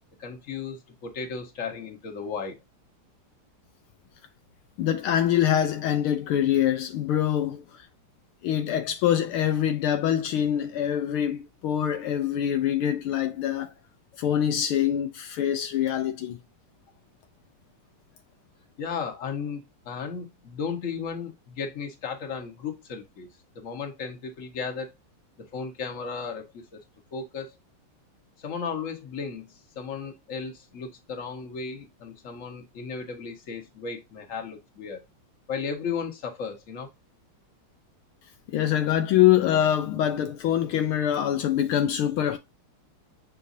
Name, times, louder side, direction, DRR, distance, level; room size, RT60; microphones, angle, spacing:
voice 1, 0.2-2.6 18.8-23.3 23.6-24.9 25.5-26.8 27.1-27.5 28.4-35.0 35.5-36.9, left 5 dB, 40° left, 1.7 m, -35 dB
voice 2, 4.8-7.6 8.4-13.7 14.2-16.4 38.5-42.4, left 10 dB, 75° left, 1.5 m, -24 dB
6.7 x 5.2 x 2.7 m
omnidirectional pair, 2.4 m